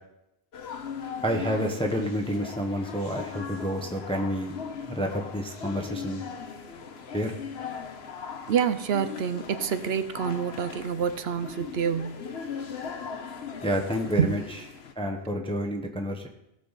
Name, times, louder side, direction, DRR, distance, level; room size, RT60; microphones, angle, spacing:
sound 1, 0.5-14.9, left 6 dB, 85° left, 1.2 m, -39 dB
voice 1, 1.2-4.5 4.9-6.2 7.1-7.3 13.6-14.4 15.0-16.3, equal, 5° left, 2 dB, 0.9 m, -29 dB
voice 2, 8.5-12.3 14.2-14.4, right 7 dB, 80° right, 11 dB, 1.0 m, -27 dB
17.5 x 6.8 x 4.0 m, 0.84 s
omnidirectional pair, 1.0 m